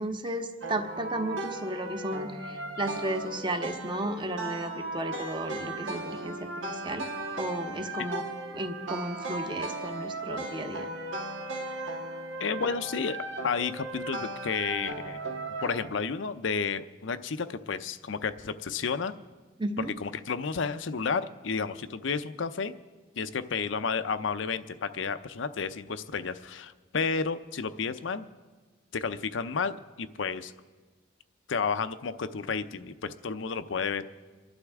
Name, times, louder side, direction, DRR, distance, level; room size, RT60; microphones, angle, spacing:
voice 1, 0.0-6.5 6.8-7.1 7.4-8.2 8.5-10.9 19.6-19.9, right 1 dB, 25° right, 6 dB, 0.9 m, -34 dB
sound 1, 0.6-15.9, right 2 dB, 85° right, 1.4 m, -37 dB
voice 2, 12.4-13.2 13.4-15.2 15.6-19.1 19.8-22.7 23.1-28.3 28.9-30.5 31.5-34.0, left 5 dB, 75° left, 12 dB, 0.6 m, -31 dB
28.5 x 11.5 x 3.6 m, 1.4 s
head